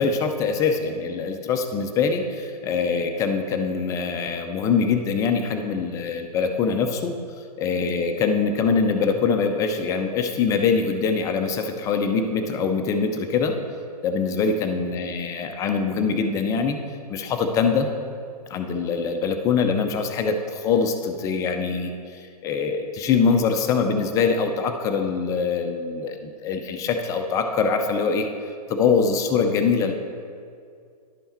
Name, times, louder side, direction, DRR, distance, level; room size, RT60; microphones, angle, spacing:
voice 1, 0.0-7.1 7.6-13.5 14.0-16.8 17.1-17.9 18.5-28.3 28.7-29.9, left 5 dB, 15° left, 6 dB, 0.5 m, -23 dB
11.0 x 5.5 x 4.2 m, 2.3 s
figure-of-eight pair, 115°, 21 cm